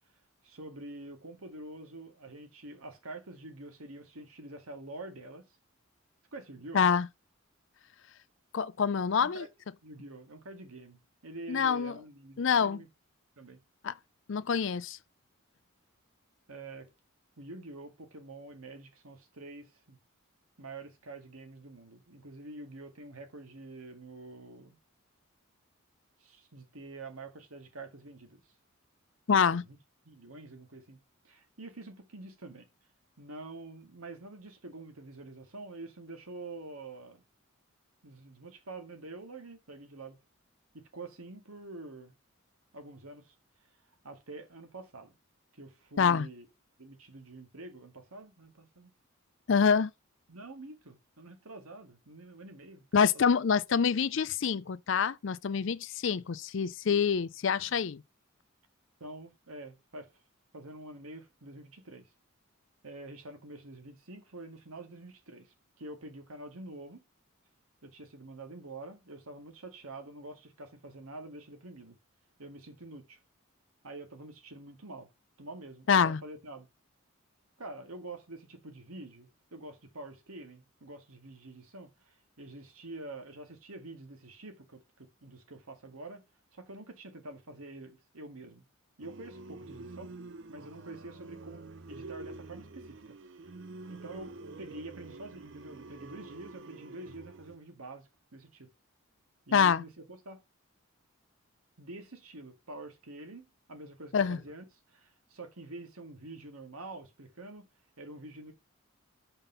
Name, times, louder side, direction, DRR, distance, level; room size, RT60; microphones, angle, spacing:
voice 1, 0.4-5.5 6.3-6.8 9.2-9.5 9.8-12.9 13.4-13.6 16.5-16.9 17.4-20.0 20.6-24.8 26.2-28.4 29.5-29.8 30.1-32.7 33.2-37.2 38.0-40.2 40.7-42.1 42.7-43.4 44.0-45.2 45.5-46.5 46.8-48.9 50.3-52.8 53.1-53.4 55.5-55.7 59.0-60.1 60.5-62.1 62.8-67.0 67.8-72.0 72.4-73.2 73.8-75.1 75.4-76.7 77.6-86.2 86.5-88.6 89.0-90.1 90.5-93.2 93.9-98.7 99.5-100.4 101.8-107.7 108.0-108.5, right 2 dB, 85° right, 1.8 m, -47 dB
voice 2, 6.7-7.1 8.5-9.5 11.5-11.9 12.4-12.8 13.8-13.9 14.3-15.0 29.3-29.6 46.0-46.3 49.5-49.9 52.9-58.0 75.9-76.2 99.5-99.8 104.1-104.4, left 6 dB, 60° left, 0.4 m, -26 dB
sound 1, 89.0-97.6, right 3 dB, 55° right, 0.6 m, -47 dB
5.8 x 5.3 x 5.5 m
head